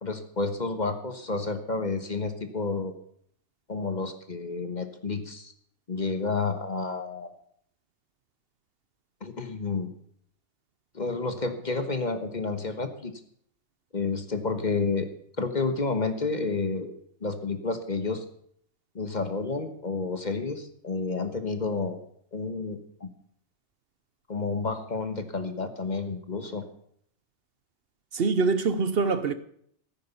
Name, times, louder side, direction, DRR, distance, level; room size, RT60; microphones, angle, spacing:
voice 1, 0.0-2.9 3.7-5.5 5.9-7.3 9.2-9.9 10.9-13.1 13.9-15.1 15.4-16.9 17.2-18.2 18.9-22.0 22.3-23.1 24.3-26.6, left 4 dB, 40° left, 1.4 m, -30 dB
voice 2, 28.1-29.3, right 4 dB, 60° right, 1.0 m, -24 dB
14.0 x 9.9 x 6.9 m
omnidirectional pair, 1.2 m